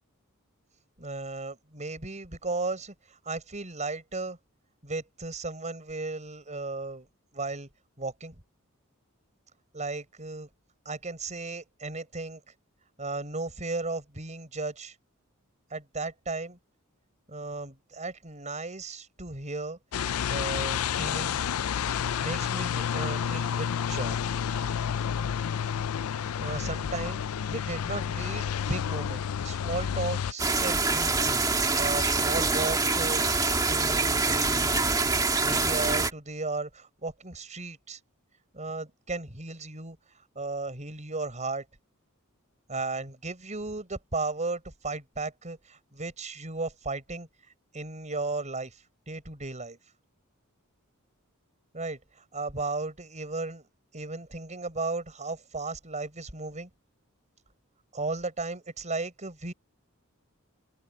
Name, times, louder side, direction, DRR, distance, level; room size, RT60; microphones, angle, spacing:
voice 1, 1.0-4.4 4.8-7.1 7.3-7.7 8.0-8.4 9.7-10.5 10.8-12.4 13.0-14.9 15.7-16.6 17.3-19.8 20.3-21.4 22.2-24.2 26.4-27.2 27.5-34.8 35.4-38.0 38.5-40.0 40.3-41.6 42.7-47.3 47.7-48.7 49.1-49.8 51.7-53.7 53.9-56.7 57.9-59.5, right 3 dB, 35° right, 6.2 m, -35 dB
sound 1, 19.9-30.3, left 8 dB, 75° left, 0.4 m, -30 dB
sound 2, 30.4-36.1, right 3 dB, 15° right, 2.3 m, -25 dB
open air
head